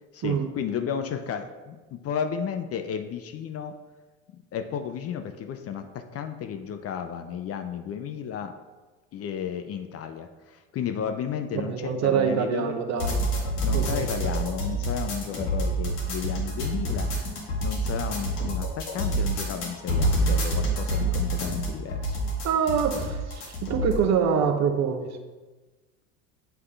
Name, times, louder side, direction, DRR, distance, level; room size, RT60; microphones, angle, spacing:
voice 1, 0.1-3.8 4.3-8.5 9.1-12.8 13.5-17.1 17.6-22.2, left 8 dB, 40° left, 7 dB, 0.5 m, -33 dB
voice 2, 11.5-13.2 13.7-14.3 22.4-25.2, right 7 dB, 45° right, 6 dB, 0.8 m, -25 dB
sound 1, 13.0-24.0, right 1 dB, 70° left, 2.0 m, -27 dB
7.9 x 3.6 x 3.3 m, 1.2 s
hypercardioid pair, 75°, 39 cm